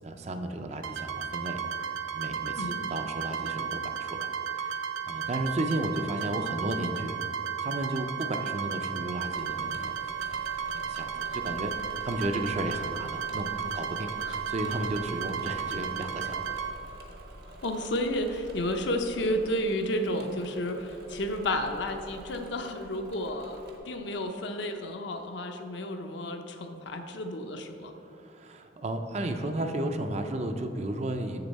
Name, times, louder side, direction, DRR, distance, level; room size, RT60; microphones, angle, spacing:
voice 1, 0.0-4.3 4.6-7.2 7.6-10.4 10.7-14.1 14.5-16.5 28.0-31.4, right 1 dB, 35° right, 6 dB, 0.4 m, -34 dB
sound 1, 0.8-16.7, right 7 dB, 90° right, 0.6 m, -34 dB
Engine / Mechanisms, 9.3-23.8, right 1 dB, 55° right, 0.8 m, -48 dB
voice 2, 17.6-27.9, left 1 dB, 60° left, 5 dB, 0.6 m, -32 dB
6.9 x 6.8 x 4.1 m, 3.0 s
head